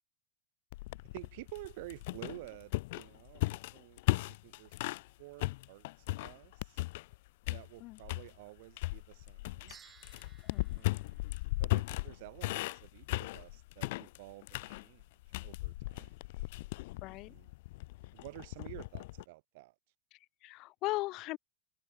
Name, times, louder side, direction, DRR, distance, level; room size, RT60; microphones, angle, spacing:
sound 1, 0.7-5.1 5.4-7.2 7.4-8.3 8.8-19.2, left 20 dB, 60° left, 0.4 m, -37 dB
voice 1, 1.1-4.8 5.2-6.8 7.5-9.8 10.7-11.2 11.6-15.1 15.4-16.1 17.1-17.5 18.1-19.7, right 22 dB, 60° right, 3.6 m, -51 dB
sound 2, 9.7-12.1, right 7 dB, 20° right, 4.7 m, -60 dB
voice 2, 17.0-17.4 20.1-21.4, left 20 dB, 40° left, 4.3 m, -38 dB
supercardioid pair, 145°, 0 cm